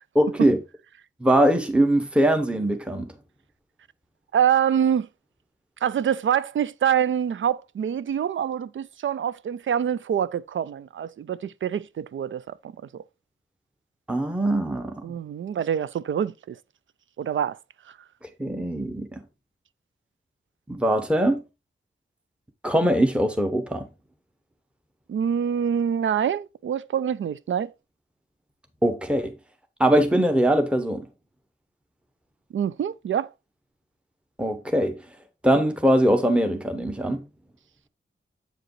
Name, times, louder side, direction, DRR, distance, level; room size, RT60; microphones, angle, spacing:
voice 1, 0.1-0.6 1.2-3.1 14.1-15.0 18.4-19.2 20.7-21.4 22.6-23.8 28.8-29.3 29.8-31.1 34.4-35.0 35.4-37.2, right 1 dB, 5° right, 0.9 m, -21 dB
voice 2, 4.3-5.1 5.8-13.0 15.0-16.6 17.2-17.6 25.1-27.7 32.5-33.3, right 8 dB, 70° right, 0.4 m, -25 dB
7.8 x 4.9 x 3.1 m
cardioid pair, 55°, 21 cm